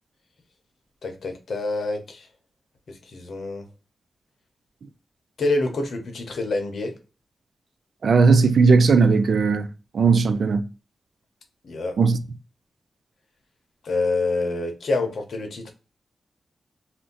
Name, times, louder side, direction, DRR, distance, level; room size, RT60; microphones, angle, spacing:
voice 1, 1.0-2.3 2.9-3.6 5.4-6.9 11.6-11.9 13.8-15.7, left 2 dB, 70° left, 0.8 m, -27 dB
voice 2, 8.0-9.7 9.9-10.6 12.0-12.2, right 4 dB, 70° right, 0.4 m, -17 dB
2.6 x 2.1 x 3.8 m
wide cardioid pair, 100°, 0 cm